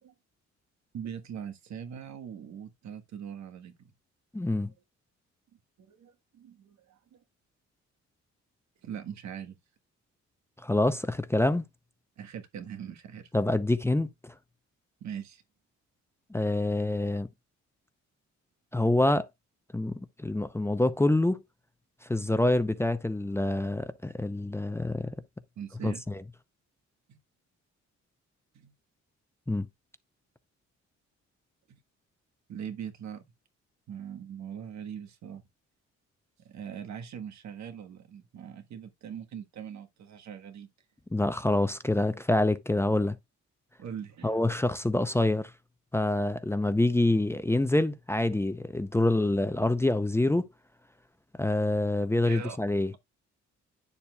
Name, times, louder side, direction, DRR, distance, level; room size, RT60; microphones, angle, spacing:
voice 1, 0.9-3.7 4.6-4.7 5.8-7.2 8.8-9.6 12.2-13.3 15.0-15.4 25.6-26.0 27.1-27.2 28.5-28.7 31.7-31.8 32.5-33.2 33.9-35.4 36.5-40.7 43.8-44.4 52.2-52.6, right 8 dB, 70° right, 1.5 m, -41 dB
voice 2, 4.3-4.7 10.6-11.6 13.3-14.3 16.3-17.3 18.7-19.3 19.7-21.4 22.1-25.1 25.8-26.2 29.5-29.7 41.1-43.2 44.2-45.5 45.9-50.5 51.4-52.9, left 2 dB, 10° left, 0.7 m, -26 dB
9.8 x 7.0 x 2.4 m
cardioid pair, 100°, 29 cm